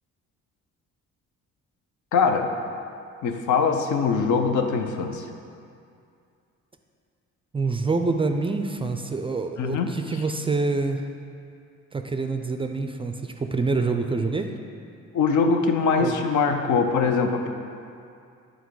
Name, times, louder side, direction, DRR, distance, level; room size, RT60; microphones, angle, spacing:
voice 1, 2.1-2.5 3.2-5.2 9.6-10.0 15.1-17.5, left 5 dB, 75° left, 5 dB, 0.7 m, -22 dB
voice 2, 7.5-11.0 11.9-14.5 16.0-16.2, right 3 dB, 20° right, 5 dB, 0.3 m, -26 dB
8.2 x 3.9 x 4.7 m, 2.5 s
cardioid pair, 90°, 30 cm